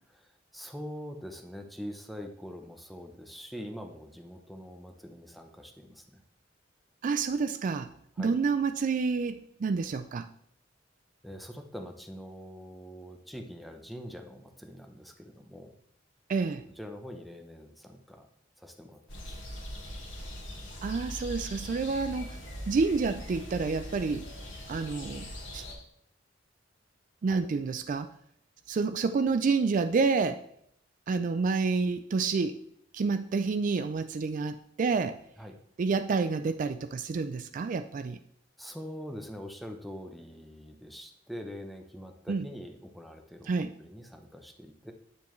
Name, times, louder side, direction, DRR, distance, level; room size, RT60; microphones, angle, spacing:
voice 1, 0.1-6.2 8.2-8.4 11.2-15.7 16.8-18.3 18.6-19.4 27.3-27.4 35.4-35.6 38.6-44.9, equal, ahead, 5 dB, 0.8 m, -44 dB
voice 2, 7.0-7.9 8.2-10.3 16.3-16.7 20.8-22.4 22.7-24.2 24.7-25.6 27.2-28.1 28.7-30.4 31.1-32.6 32.9-35.2 35.8-38.2 42.3-42.5 43.5-43.7, right 4 dB, 45° right, 9 dB, 0.3 m, -29 dB
sound 1, 19.1-25.7, equal, 80° left, 2.1 m, -41 dB
9.1 x 7.0 x 3.1 m, 0.71 s
head